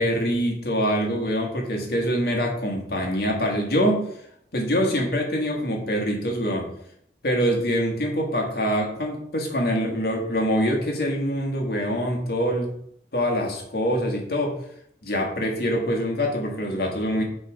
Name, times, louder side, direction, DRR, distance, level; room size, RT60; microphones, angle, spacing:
voice 1, 0.0-4.1 4.5-6.7 7.2-12.7 13.1-14.5 15.0-17.2, equal, 60° left, 1 dB, 1.6 m, -24 dB
7.9 x 3.3 x 5.0 m, 0.71 s
head